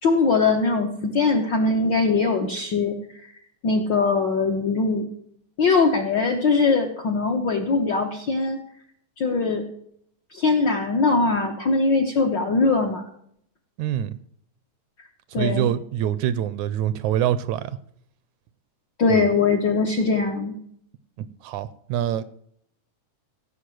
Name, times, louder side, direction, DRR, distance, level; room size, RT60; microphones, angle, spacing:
voice 1, 0.0-2.9 3.6-5.1 5.6-8.6 9.2-9.6 10.3-13.0 15.3-15.7 19.0-20.5, left 4 dB, 60° left, 1.2 m, -21 dB
voice 2, 13.8-14.2 15.3-17.8 19.1-19.3 21.2-22.2, right 10 dB, 75° right, 1.8 m, -25 dB
16.5 x 5.7 x 7.7 m
omnidirectional pair, 3.6 m